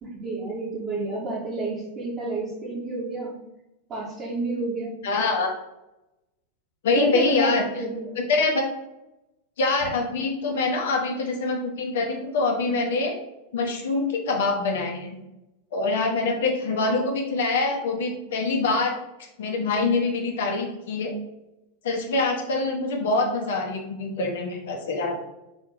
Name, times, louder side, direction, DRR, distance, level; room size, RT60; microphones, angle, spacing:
voice 1, 0.0-3.3 3.9-5.0 7.0-8.1 16.1-16.5, right 2 dB, 30° right, -8 dB, 2.0 m, -30 dB
voice 2, 5.0-5.5 6.8-7.7 8.2-8.6 9.6-13.2 13.5-15.2 15.7-19.0 19.4-21.1 21.8-25.2, left 3 dB, 60° left, 3 dB, 1.2 m, -25 dB
5.4 x 3.7 x 4.7 m, 0.94 s
figure-of-eight pair, 90°, 0 cm